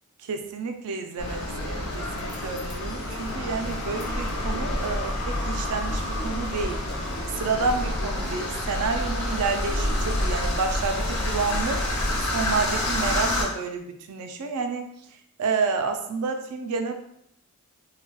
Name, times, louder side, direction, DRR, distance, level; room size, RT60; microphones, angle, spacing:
voice 1, 0.2-6.8 7.4-11.8 12.3-14.9 15.4-16.9, right 4 dB, 85° right, 5 dB, 0.4 m, -29 dB
sound 1, 1.2-13.5, left 1 dB, 75° left, 0.7 m, -28 dB
3.9 x 2.2 x 2.2 m, 0.73 s
head